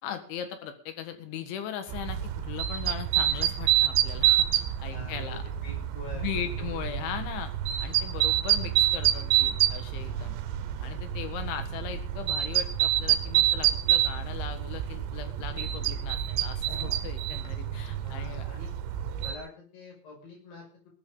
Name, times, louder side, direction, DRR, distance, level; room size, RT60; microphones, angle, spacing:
voice 1, 0.0-5.4 6.1-7.5 7.8-10.4 10.8-18.5, left 9 dB, 90° left, 8 dB, 4.0 m, -38 dB
sound 1, 1.9-19.4, right 12 dB, 80° right, 3.0 m, -28 dB
voice 2, 4.8-7.2 18.0-18.7 19.2-20.9, left 3 dB, 60° left, -1 dB, 8.5 m, -45 dB
18.5 x 12.5 x 4.0 m, 0.38 s
omnidirectional pair, 5.2 m